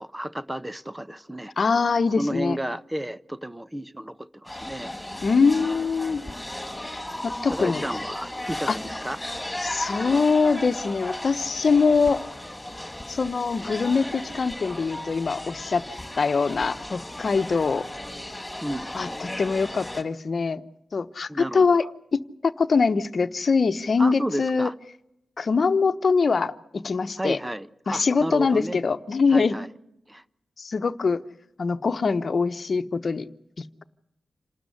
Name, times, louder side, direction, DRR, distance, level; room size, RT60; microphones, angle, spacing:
voice 1, 0.0-1.5 2.2-4.9 7.5-9.2 18.6-18.9 21.3-21.8 24.0-24.7 27.2-28.8 29.3-29.7 30.1-30.2, equal, 15° right, 0.9 m, -32 dB
voice 2, 1.6-2.6 5.2-6.2 7.2-7.9 8.7-8.8 9.6-12.2 13.1-15.8 16.2-17.8 18.9-20.6 20.9-21.8 22.1-24.7 25.4-27.4 27.9-29.6 30.6-31.2 31.6-33.3 33.6-33.8, left 4 dB, 60° left, 1.0 m, -23 dB
sound 1, 4.4-20.0, left 1 dB, 10° left, 6.1 m, -35 dB
28.0 x 13.0 x 9.9 m
cardioid pair, 45°, 0 cm